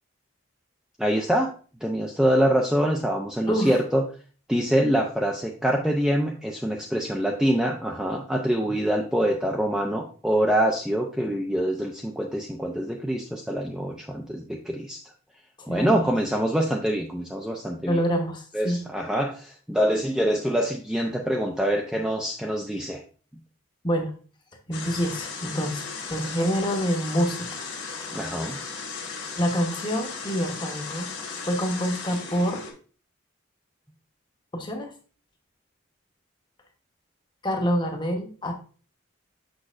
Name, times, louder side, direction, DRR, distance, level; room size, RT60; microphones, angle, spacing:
voice 1, 1.0-1.5 1.8-4.0 4.5-15.0 15.7-18.0 18.5-23.0 28.1-28.6, equal, 5° right, 0 dB, 0.5 m, -25 dB
voice 2, 3.5-3.8 15.6-16.1 17.9-18.8 23.8-24.1 24.7-28.2 29.4-31.1 31.4-32.6 34.5-34.9 37.4-38.5, equal, 20° left, 3 dB, 1.0 m, -27 dB
sound 1, 24.7-32.7, left 5 dB, 55° left, 1.5 m, -36 dB
6.3 x 6.0 x 2.5 m, 0.40 s
head